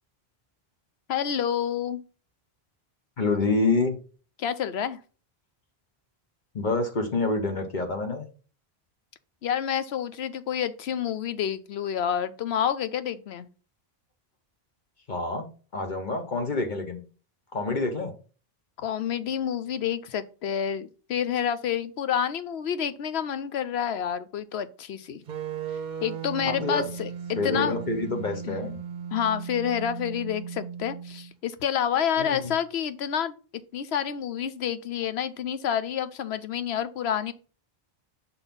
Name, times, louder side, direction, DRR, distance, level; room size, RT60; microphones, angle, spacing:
voice 1, 1.1-2.0 4.4-5.0 9.4-13.5 18.8-25.2 26.0-27.8 28.4-28.7 29.1-33.3 33.7-37.3, left 9 dB, 85° left, 0.9 m, -28 dB
voice 2, 3.2-4.0 6.5-8.3 15.1-15.5 15.7-17.0 17.5-18.1 26.4-26.8 27.4-28.8 32.2-32.5, left 3 dB, 50° left, 1.1 m, -27 dB
sound 1, 25.3-31.3, right 7 dB, 55° right, 0.7 m, -36 dB
5.9 x 4.0 x 5.2 m
omnidirectional pair, 1.0 m